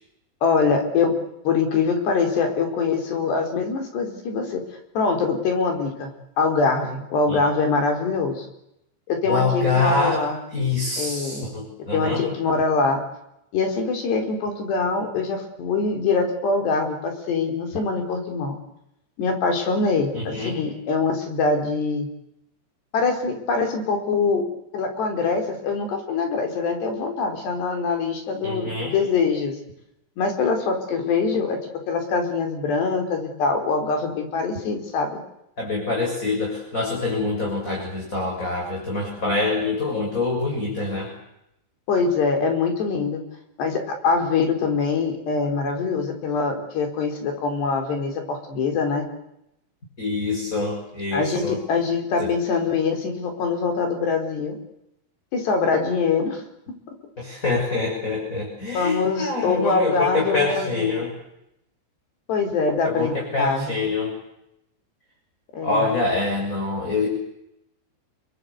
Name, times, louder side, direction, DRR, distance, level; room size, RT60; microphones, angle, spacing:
voice 1, 0.4-1.1 1.4-4.6 4.9-8.5 9.1-10.4 11.0-11.5 11.9-13.0 13.5-18.5 19.2-22.1 22.9-24.4 24.7-29.6 30.2-31.6 31.9-35.2 41.9-43.2 43.6-49.1 51.1-54.6 55.3-56.4 58.7-61.0 62.3-63.8 65.5-65.9, left 4 dB, 75° left, 4 dB, 6.5 m, -23 dB
voice 2, 9.2-10.3 10.5-12.2 20.1-20.5 28.4-28.9 35.6-41.1 50.0-51.6 52.2-52.3 57.2-61.1 62.8-64.1 65.6-67.1, left 3 dB, 20° left, 0 dB, 6.6 m, -25 dB
29.5 x 22.5 x 8.3 m, 0.82 s
omnidirectional pair, 4.8 m